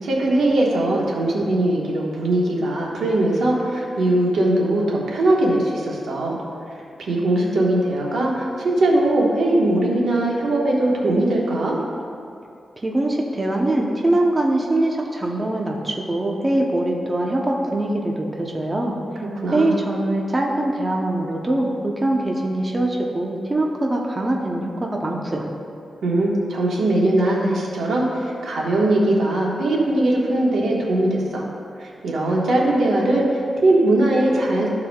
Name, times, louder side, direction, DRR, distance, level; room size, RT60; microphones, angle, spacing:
voice 1, 0.0-6.4 6.7-11.8 19.3-19.7 26.0-31.4 31.8-34.7, right 1 dB, 85° right, -3 dB, 1.4 m, -20 dB
voice 2, 12.8-19.0 19.5-25.5, right 1 dB, 25° right, -1 dB, 0.8 m, -22 dB
14.0 x 4.7 x 2.4 m, 2.5 s
wide cardioid pair, 95°, 0 cm